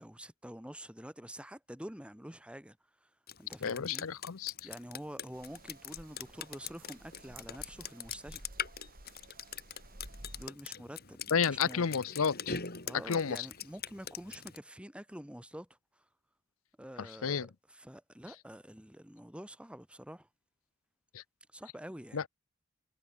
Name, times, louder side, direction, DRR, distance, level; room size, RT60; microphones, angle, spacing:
voice 1, 0.0-3.1 3.4-4.1 4.6-8.5 10.4-11.9 12.8-15.7 16.0-16.1 16.8-20.3 21.5-22.2, equal, 5° right, 3.1 m, -47 dB
Drip, 3.3-14.6, left 7 dB, 50° left, 5.6 m, -42 dB
voice 2, 3.6-4.5 11.3-12.6 13.1-13.4 17.2-17.5 21.1-21.2 22.1-22.2, left 6 dB, 80° left, 0.7 m, -31 dB
sound 1, 5.3-10.5, right 2 dB, 45° right, 2.9 m, -53 dB
head